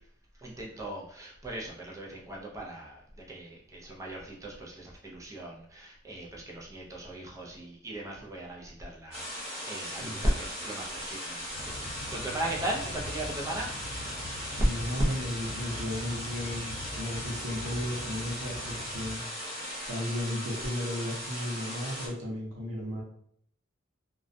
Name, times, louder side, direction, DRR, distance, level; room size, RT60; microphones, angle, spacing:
voice 1, 0.4-3.0 3.3-13.7, right 1 dB, 15° right, -2 dB, 0.4 m, -37 dB
sound 1, 9.1-22.1, equal, 30° right, 1.1 m, -38 dB
voice 2, 9.8-10.2 14.6-19.2 19.9-23.0, left 1 dB, 85° right, -3 dB, 0.7 m, -35 dB
sound 2, 11.5-19.1, left 1 dB, 45° left, 0.9 m, -42 dB
2.2 x 2.1 x 2.5 m, 0.67 s
head